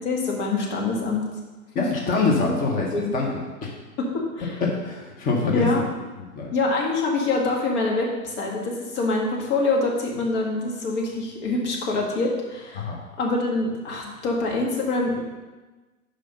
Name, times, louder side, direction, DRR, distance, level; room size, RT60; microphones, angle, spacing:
voice 1, 0.0-1.2 1.8-1.9 2.4-2.5 2.9-3.2 4.0-4.6 5.5-5.8 6.5-12.9 13.2-15.2, left 3 dB, 50° left, -1 dB, 2.0 m, -25 dB
voice 2, 1.7-3.7 4.6-5.9 6.4-6.5 12.7-13.0, left 3 dB, 20° left, -1 dB, 1.1 m, -25 dB
5.9 x 5.0 x 5.6 m, 1.2 s
hypercardioid pair, 130°, 44 cm